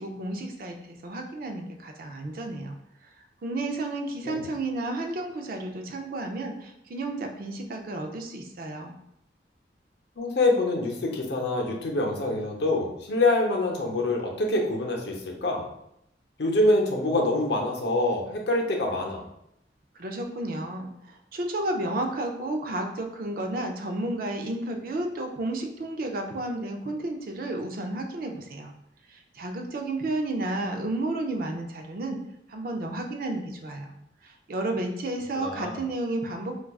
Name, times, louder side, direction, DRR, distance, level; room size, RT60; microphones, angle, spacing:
voice 1, 0.0-2.8 3.4-8.9 20.0-28.7 29.1-32.2 32.5-33.9 34.2-36.7, right 2 dB, 55° right, 3 dB, 0.4 m, -32 dB
voice 2, 10.2-15.7 16.4-19.2 35.4-35.8, left 2 dB, 65° left, 0 dB, 0.7 m, -25 dB
4.5 x 2.3 x 2.3 m, 0.79 s
head